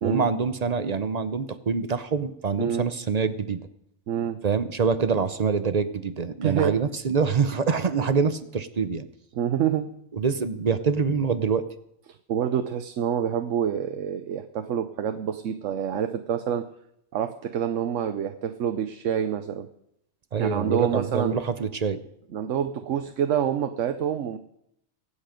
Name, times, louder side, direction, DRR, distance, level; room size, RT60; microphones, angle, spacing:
voice 1, 0.0-3.6 4.4-9.1 10.1-11.6 20.3-22.0, right 5 dB, 40° right, 11 dB, 0.6 m, -25 dB
voice 2, 4.1-4.4 6.4-6.8 9.3-9.9 12.3-16.6 17.1-19.7 20.3-21.4 22.3-24.4, right 9 dB, 65° right, 8 dB, 1.0 m, -27 dB
23.0 x 8.4 x 5.1 m, 0.79 s
omnidirectional pair, 1.4 m